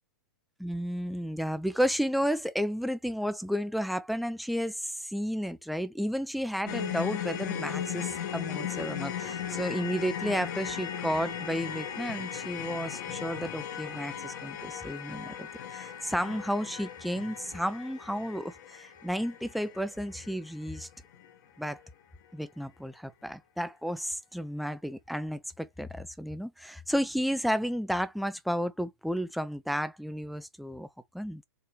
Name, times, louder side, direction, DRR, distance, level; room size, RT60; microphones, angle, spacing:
voice 1, 0.6-20.9 21.6-21.8 22.3-30.9 31.1-31.4, equal, ahead, 0.5 m, -32 dB
sound 1, 6.7-20.9 21.1-21.3 21.7-21.8, left 9 dB, 55° left, 1.2 m, -37 dB
4.5 x 2.9 x 3.1 m
hypercardioid pair, 130°, 12 cm